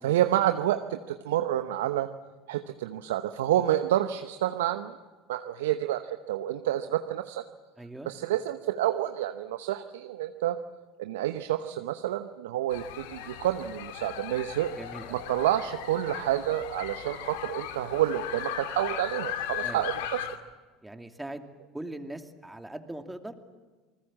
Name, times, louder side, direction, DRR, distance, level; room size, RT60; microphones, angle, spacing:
voice 1, 0.0-2.1 2.5-5.0 5.3-7.5 8.1-10.6 11.0-14.7 15.1-20.2, right 12 dB, 75° right, 9 dB, 0.9 m, -29 dB
voice 2, 7.8-8.1 14.8-15.2 19.6-19.9 20.8-21.4 21.7-23.3, right 1 dB, 10° right, 5 dB, 2.6 m, -40 dB
sound 1, 12.7-20.4, left 10 dB, 70° left, 2.1 m, -37 dB
28.0 x 20.5 x 7.6 m, 1.3 s
hypercardioid pair, 70°, 0 cm